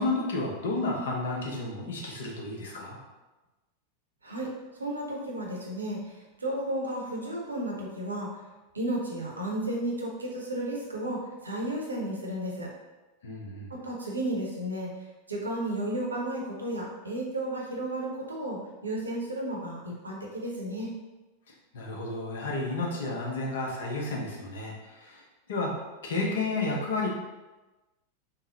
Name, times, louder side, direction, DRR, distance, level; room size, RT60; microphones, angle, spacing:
voice 1, 0.0-3.0 13.2-13.7 21.7-25.2 25.5-25.7 26.0-27.1, left 2 dB, 60° left, -1 dB, 0.7 m, -31 dB
voice 2, 4.8-6.0 6.4-8.3 8.7-12.7 13.7-14.9 15.3-20.9, right 1 dB, 80° right, -2 dB, 0.7 m, -33 dB
3.7 x 2.0 x 2.8 m, 1.1 s
figure-of-eight pair, 90°, 0 cm